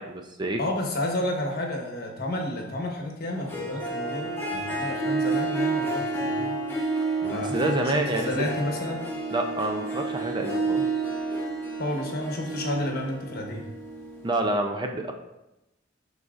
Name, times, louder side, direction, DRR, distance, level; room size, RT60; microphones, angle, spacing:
voice 1, 0.0-0.6 7.3-8.3 9.3-10.9 14.2-15.1, right 2 dB, 25° right, 4 dB, 0.4 m, -28 dB
voice 2, 0.6-6.6 7.2-9.0 11.8-13.7, left 1 dB, 55° left, 1 dB, 1.1 m, -31 dB
Harp, 3.3-14.5, right 2 dB, 10° left, 0.9 m, -30 dB
11.0 x 4.0 x 2.5 m, 0.94 s
head